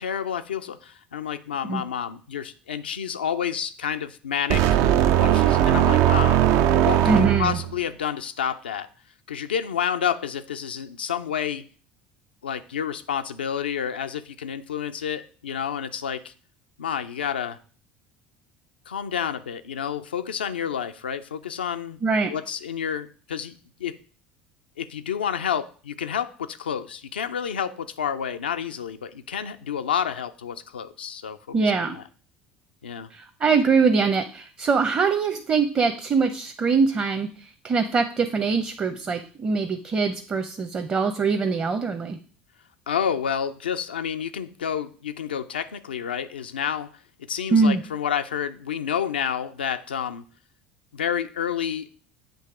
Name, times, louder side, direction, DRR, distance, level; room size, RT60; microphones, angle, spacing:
voice 1, 0.0-4.6 5.2-6.4 6.8-8.9 9.3-11.6 12.4-16.3 16.8-17.6 18.9-22.0 22.3-24.0 24.8-32.0 32.8-33.1 42.9-46.9 47.3-50.2 50.9-51.9, left 8 dB, 90° left, 9 dB, 0.4 m, -29 dB
sound 1, 4.5-7.7, right 11 dB, 60° right, 0.4 m, -19 dB
voice 2, 7.0-7.6 22.0-22.3 31.5-32.0 33.1-37.3 37.6-42.2 47.5-47.8, right 4 dB, 35° right, 5 dB, 0.8 m, -23 dB
7.7 x 2.9 x 5.9 m, 0.41 s
hypercardioid pair, 70°, 5 cm